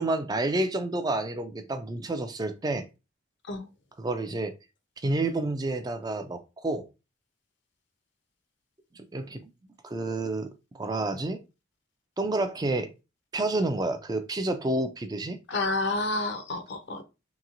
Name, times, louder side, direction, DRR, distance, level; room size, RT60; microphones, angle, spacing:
voice 1, 0.0-2.9 4.0-4.5 5.0-6.9 8.9-9.4 9.8-10.5 10.7-11.4 12.2-12.9 13.3-15.4, right 2 dB, 20° right, 0.3 m, -29 dB
voice 2, 15.5-17.0, left 2 dB, 55° left, 0.5 m, -29 dB
3.0 x 2.9 x 2.5 m
head